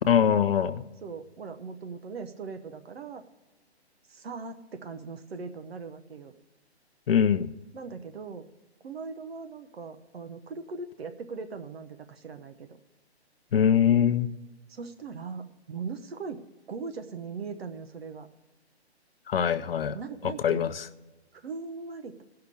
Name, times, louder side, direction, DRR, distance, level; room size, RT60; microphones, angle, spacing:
voice 1, 0.1-0.8 7.1-7.5 13.5-14.3 19.3-20.0 20.2-20.9, left 8 dB, 60° left, 12 dB, 0.5 m, -23 dB
voice 2, 1.0-3.2 4.1-6.3 7.7-8.5 8.8-12.8 14.7-16.4 16.7-18.3 19.9-20.8 21.3-22.2, right 4 dB, 65° right, 8 dB, 0.9 m, -39 dB
17.0 x 5.8 x 6.6 m, 1.1 s
hypercardioid pair, 165°, 33 cm